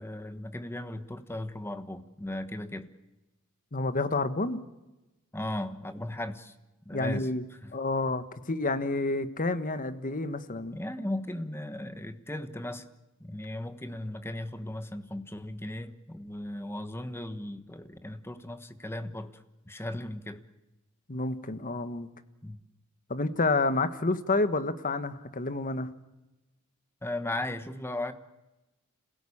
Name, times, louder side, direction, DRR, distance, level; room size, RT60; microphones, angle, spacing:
voice 1, 0.0-2.9 5.3-6.5 6.8-7.3 7.6-7.7 10.7-12.9 13.2-20.4 22.4-22.6 27.0-28.1, left 1 dB, 10° left, 1.3 m, -37 dB
voice 2, 3.7-4.6 6.9-7.4 7.7-10.8 21.1-22.1 23.1-25.9, left 3 dB, 40° left, 1.3 m, -29 dB
27.0 x 16.5 x 8.6 m
head